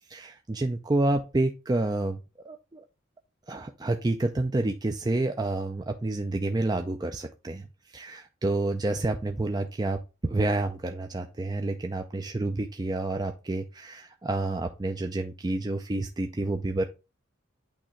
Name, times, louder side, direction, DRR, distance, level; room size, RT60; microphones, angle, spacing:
voice 1, 0.1-2.2 2.4-2.8 3.5-16.8, right 2 dB, 20° right, 5 dB, 0.4 m, -29 dB
8.7 x 3.0 x 4.4 m, 0.28 s
head